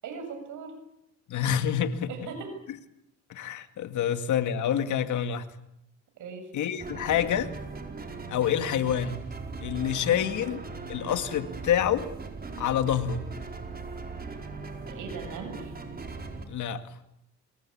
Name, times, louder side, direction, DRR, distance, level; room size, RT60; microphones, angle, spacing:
voice 1, 0.0-0.8 2.1-2.5 6.2-6.5 10.1-10.3 14.9-15.7, right 4 dB, 80° right, 6 dB, 7.2 m, -39 dB
voice 2, 1.3-2.1 3.3-5.5 6.5-7.5 8.3-9.2 9.6-10.6 10.9-12.1 12.6-13.2 16.5-16.8, left 9 dB, 75° left, 10 dB, 2.0 m, -27 dB
sound 1, 6.8-16.5, right 4 dB, 30° right, 4.6 m, -39 dB
25.0 x 22.5 x 8.6 m, 0.83 s
cardioid pair, 90°, 30 cm